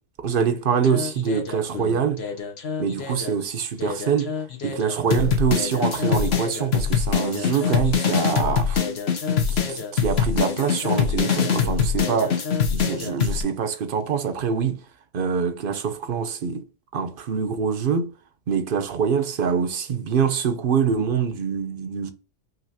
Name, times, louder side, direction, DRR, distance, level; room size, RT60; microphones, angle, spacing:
voice 1, 0.2-2.2 2.8-4.3 4.6-8.9 9.5-12.4 12.7-14.8 15.1-16.6 16.9-18.1 18.5-22.1, right 6 dB, 50° right, 0.8 m, -24 dB
sound 1, 0.8-3.3 3.8-13.4, left 7 dB, 55° left, 1.1 m, -24 dB
5.9 x 2.8 x 2.7 m
omnidirectional pair, 1.3 m